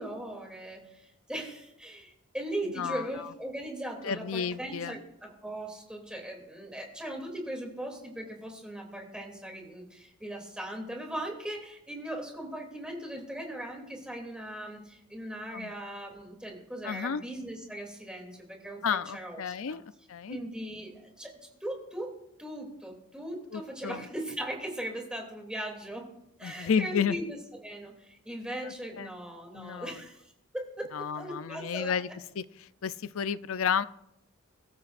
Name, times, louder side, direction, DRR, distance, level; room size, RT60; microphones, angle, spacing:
voice 1, 0.0-19.8 20.3-26.1 26.4-32.1, right 1 dB, 5° right, 1 dB, 2.9 m, -39 dB
voice 2, 2.8-3.3 4.0-5.0 15.5-15.7 16.8-17.2 18.8-19.8 20.1-20.4 23.5-24.1 26.4-27.2 29.0-29.1 29.5-30.0 30.9-32.1 32.4-33.8, left 7 dB, 75° left, 15 dB, 0.5 m, -31 dB
23.0 x 13.5 x 2.6 m, 0.80 s
head